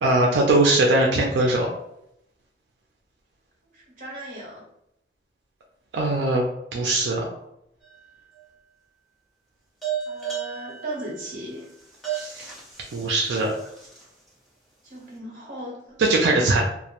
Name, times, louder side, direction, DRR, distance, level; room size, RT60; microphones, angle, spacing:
voice 1, 0.0-1.7 5.9-6.5 6.7-7.3 12.1-12.5 12.9-13.5 16.0-16.6, right 2 dB, 80° right, -1 dB, 0.4 m, -21 dB
voice 2, 3.7-4.6 10.0-11.7 14.8-16.5, right 1 dB, 45° right, -3 dB, 0.8 m, -37 dB
sound 1, 7.8-8.4 9.8-14.3, right 9 dB, ahead, 0.5 m, -34 dB
2.1 x 2.0 x 2.8 m, 0.78 s
head